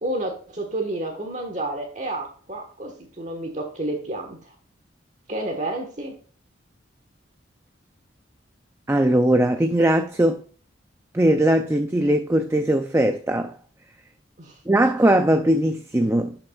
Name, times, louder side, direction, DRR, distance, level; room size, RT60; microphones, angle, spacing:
voice 1, 0.0-4.5 5.3-6.2 14.4-14.6, right 1 dB, 40° right, 1.3 m, -30 dB
voice 2, 8.9-10.4 11.1-13.5 14.7-16.4, right 1 dB, 15° right, 0.4 m, -20 dB
11.5 x 5.8 x 2.3 m
head